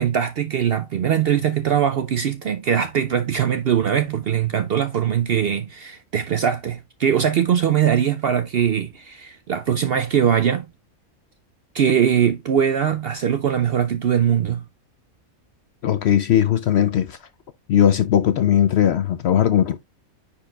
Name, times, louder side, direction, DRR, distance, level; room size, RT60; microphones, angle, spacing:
voice 1, 0.0-10.7 11.7-14.6, right 8 dB, 65° right, 0.6 m, -21 dB
voice 2, 15.8-17.2 17.7-19.8, left 10 dB, 65° left, 0.6 m, -18 dB
9.7 x 4.4 x 2.3 m
omnidirectional pair, 1.5 m